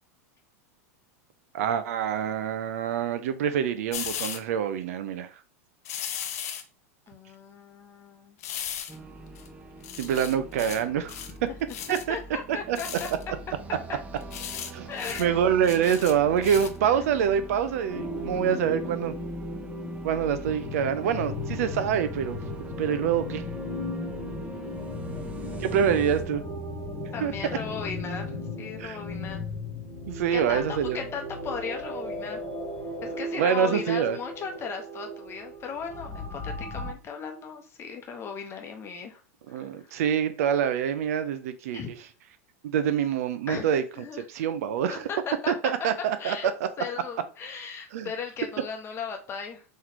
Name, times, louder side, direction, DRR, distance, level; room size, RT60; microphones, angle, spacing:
voice 1, 1.5-5.3 10.0-11.1 11.9-12.2 12.5-12.8 14.7-14.9 15.2-19.1 20.0-22.4 22.8-23.4 25.6-26.5 27.2-27.3 28.8-29.0 30.1-31.0 33.0-34.2 39.5-42.0 42.6-43.8 44.1-45.1 45.5-46.4 47.9-48.1, right 8 dB, 75° right, 11 dB, 0.5 m, -26 dB
sound 1, 3.9-4.4 5.8-6.6 8.4-9.0 9.4-9.5 9.8-10.8 11.1-11.4 11.7-12.0 12.7-13.2 14.2-14.7 15.0-15.2 15.6-16.8 17.2-17.3, left 9 dB, 75° left, 0.5 m, -36 dB
voice 2, 7.1-8.4 11.9-13.1 14.9-15.4 25.1-25.8 27.1-29.4 30.3-32.4 33.0-39.2 39.5-40.0 41.7-41.9 43.5-44.2 44.9-45.7 46.2-46.5 46.8-49.6, left 6 dB, 30° left, 4 dB, 0.9 m, -37 dB
sound 2, 8.9-26.2, right 3 dB, 15° right, 0.6 m, -43 dB
sound 3, 17.9-36.9, left 1 dB, 10° left, 2.1 m, -36 dB
3.8 x 3.1 x 2.8 m, 0.36 s
hypercardioid pair, 105°, 8 cm